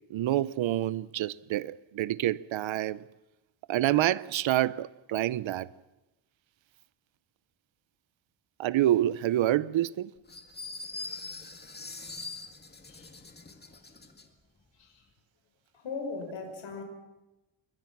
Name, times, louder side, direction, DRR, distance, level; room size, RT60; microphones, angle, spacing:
voice 1, 0.1-3.0 3.7-5.7 8.6-10.1, right 13 dB, 70° right, 0.7 m, -27 dB
sound 1, 10.3-14.3, left 3 dB, 20° left, 2.1 m, -42 dB
voice 2, 12.9-13.2 13.6-14.1 14.7-15.1 15.7-16.8, left 4 dB, 65° left, 5.5 m, -40 dB
27.0 x 23.0 x 6.0 m
cardioid pair, 125°, 48 cm